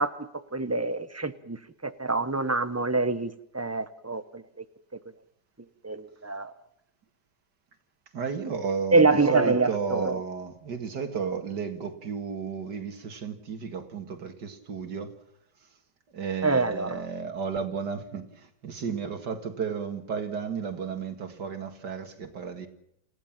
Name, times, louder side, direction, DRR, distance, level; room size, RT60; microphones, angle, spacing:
voice 1, 0.0-1.6 1.8-4.4 5.8-6.5 8.9-10.1 16.4-17.0, right 3 dB, 10° right, 0.8 m, -26 dB
voice 2, 8.1-15.2 16.1-22.7, right 6 dB, 70° right, 2.5 m, -33 dB
29.0 x 15.5 x 7.4 m
omnidirectional pair, 1.9 m